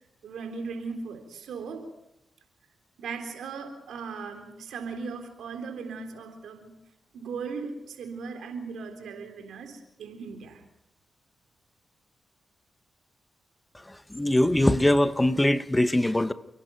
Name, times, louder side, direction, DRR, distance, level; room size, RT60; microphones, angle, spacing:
voice 1, 0.2-1.9 3.0-6.7 7.1-10.6, right 5 dB, 80° right, 3.7 m, -38 dB
voice 2, 14.1-16.3, left 1 dB, 15° left, 1.2 m, -22 dB
29.0 x 11.0 x 9.3 m
cardioid pair, 55°, 0 cm